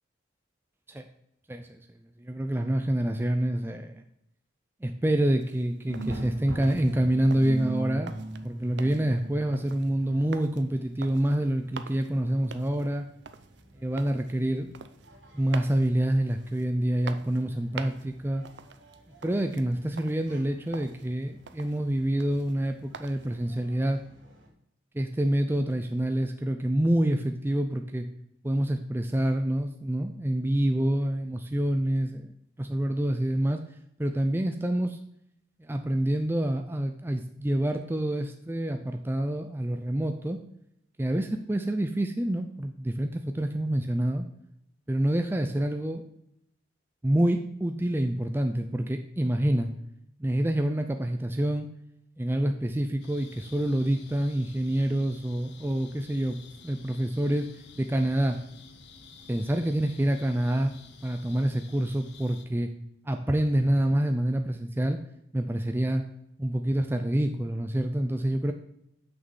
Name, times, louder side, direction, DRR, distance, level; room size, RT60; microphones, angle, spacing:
voice 1, 1.5-1.8 2.2-4.0 4.8-8.1 8.4-13.1 13.8-14.7 15.3-18.4 19.2-24.0 24.9-28.1 28.4-33.6 34.0-35.0 35.6-40.4 41.0-44.3 44.9-46.0 47.0-49.7 50.2-51.7 52.2-57.5 57.8-58.4 59.3-60.7 61.0-62.7 63.0-65.0 65.3-66.0 66.4-68.5, right 1 dB, 10° right, 5 dB, 0.4 m, -27 dB
sound 1, 5.4-23.4, right 5 dB, 60° right, 0.6 m, -47 dB
sound 2, 5.9-24.5, right 2 dB, 80° right, 2.9 m, -43 dB
sound 3, 53.0-62.4, left 4 dB, 60° left, 0.9 m, -51 dB
6.3 x 6.1 x 7.1 m, 0.77 s
head